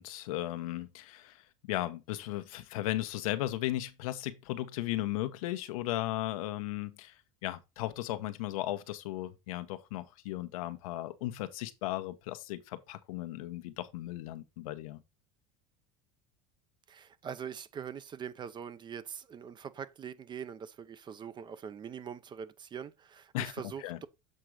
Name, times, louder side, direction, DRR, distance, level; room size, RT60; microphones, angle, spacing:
voice 1, 0.0-15.0 23.3-24.0, left 15 dB, 85° left, 0.9 m, -36 dB
voice 2, 16.9-24.1, right 7 dB, 25° right, 0.5 m, -43 dB
7.6 x 3.8 x 4.6 m
supercardioid pair, 125°, 18 cm